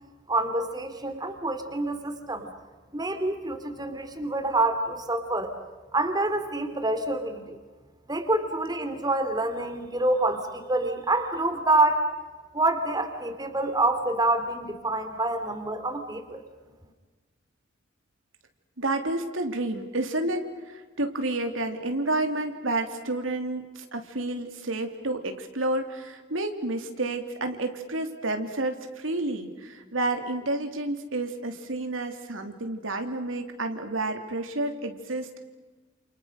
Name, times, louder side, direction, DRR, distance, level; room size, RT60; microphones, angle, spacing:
voice 1, 0.3-2.5 2.9-5.5 5.9-7.6 8.1-12.0 12.5-16.4, right 2 dB, 20° right, 7 dB, 2.9 m, -27 dB
voice 2, 18.8-35.4, right 2 dB, 85° right, 6 dB, 3.2 m, -30 dB
29.0 x 29.0 x 6.6 m, 1.3 s
head